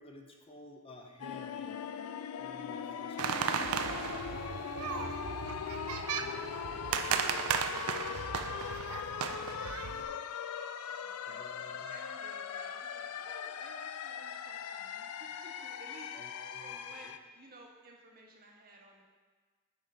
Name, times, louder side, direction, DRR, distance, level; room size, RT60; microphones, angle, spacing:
voice 1, 0.0-1.8 2.4-4.8 11.3-11.9 16.1-17.1, left 2 dB, 25° left, 2 dB, 0.6 m, -54 dB
sound 1, 1.2-17.2, left 7 dB, 85° left, 0.4 m, -40 dB
sound 2, 3.2-10.0, right 6 dB, 75° right, 0.5 m, -35 dB
voice 2, 5.9-7.3 7.8-10.2 10.5-16.1 16.6-19.0, right 2 dB, 45° right, -1 dB, 1.2 m, -56 dB
9.1 x 4.2 x 5.0 m, 1.4 s
head